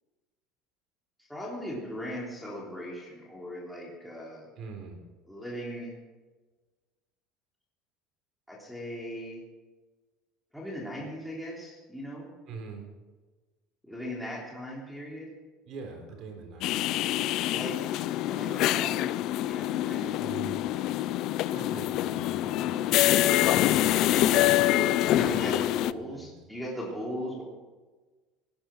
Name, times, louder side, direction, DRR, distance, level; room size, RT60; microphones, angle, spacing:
voice 1, 1.3-4.5 5.3-6.0 8.5-9.4 10.5-12.3 13.8-15.3 17.5-17.9 18.3-20.9 24.1-27.4, equal, ahead, -5 dB, 3.3 m, -38 dB
voice 2, 4.6-5.0 12.5-12.8 15.6-17.0 20.2-20.5 21.5-24.5 25.3-26.3, right 4 dB, 45° right, 3 dB, 3.8 m, -44 dB
sound 1, 16.6-25.9, left 14 dB, 50° left, 0.4 m, -25 dB
19.0 x 10.0 x 6.3 m, 1.3 s
cardioid pair, 165°, 0 cm